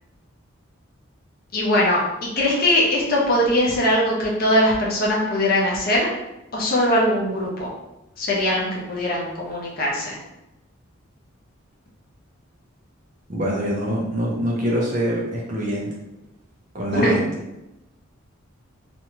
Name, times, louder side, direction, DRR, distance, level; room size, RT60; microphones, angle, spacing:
voice 1, 1.5-6.1 6.5-7.7 8.2-10.2 16.9-17.1, left 1 dB, 45° left, -3 dB, 0.6 m, -21 dB
voice 2, 13.3-15.9 16.7-17.3, equal, 35° right, -3 dB, 0.6 m, -24 dB
2.5 x 2.2 x 2.9 m, 0.92 s
head